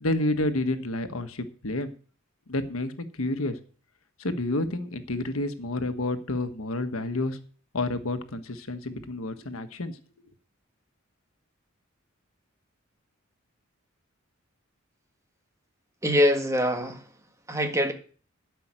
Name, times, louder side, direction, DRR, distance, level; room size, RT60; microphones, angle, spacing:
voice 1, 0.0-1.9 2.5-3.6 4.2-7.4 7.7-9.9, left 2 dB, 85° left, 1.4 m, -29 dB
voice 2, 16.0-17.0 17.5-17.9, left 1 dB, 15° right, 1.7 m, -23 dB
12.5 x 5.8 x 8.9 m
head